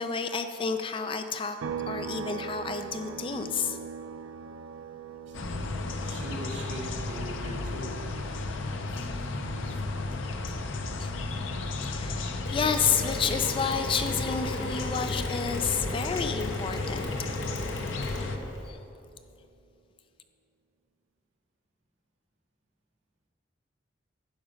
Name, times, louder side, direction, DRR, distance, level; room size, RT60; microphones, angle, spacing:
voice 1, 0.0-1.6 1.9-3.8 11.0-11.2 11.9-17.1 18.7-18.8, left 6 dB, 25° left, 8 dB, 0.3 m, -30 dB
sound 1, 1.6-15.2 15.5-17.7, right 6 dB, 85° right, 0.4 m, -43 dB
sound 2, 5.3-18.4, left 3 dB, 80° left, 0.6 m, -33 dB
voice 2, 6.0-8.0, equal, 65° right, -3 dB, 1.8 m, -40 dB
Mechanisms, 12.4-18.7, left 1 dB, 65° left, 1.5 m, -37 dB
10.5 x 6.0 x 5.1 m, 2.7 s
head